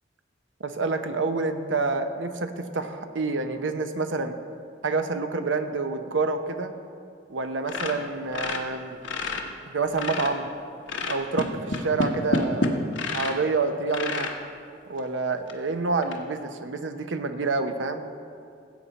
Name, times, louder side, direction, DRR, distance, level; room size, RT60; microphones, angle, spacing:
voice 1, 0.6-4.4 4.8-6.7 7.3-9.0 9.7-10.5 11.1-12.8 13.1-14.3 14.9-18.0, right 3 dB, 85° right, 8 dB, 0.8 m, -28 dB
sound 1, 7.7-9.5 9.8-10.5 10.9-13.4 13.9-14.4 15.0-15.1 15.5-15.6 16.0-16.2, left 2 dB, 75° left, 1.1 m, -28 dB
16.0 x 8.2 x 4.1 m, 2.5 s
head